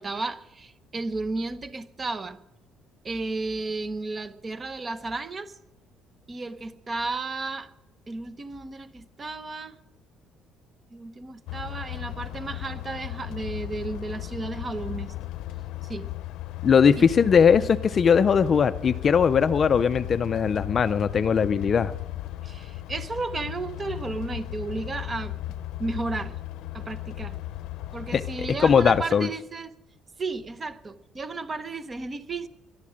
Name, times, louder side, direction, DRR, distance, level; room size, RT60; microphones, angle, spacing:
voice 1, 0.0-2.4 3.0-5.5 6.3-7.7 8.1-9.8 10.9-15.1 15.8-16.1 17.0-17.1 22.4-25.3 25.8-26.4 26.7-27.4 27.9-29.7 30.2-32.5, right 3 dB, 25° right, 0.9 m, -33 dB
sound 1, 11.5-29.0, left 15 dB, 80° left, 0.7 m, -36 dB
voice 2, 16.6-21.9 28.1-28.2 28.6-29.3, left 6 dB, 35° left, 0.4 m, -20 dB
21.5 x 12.0 x 5.1 m
cardioid pair, 140°, 0 cm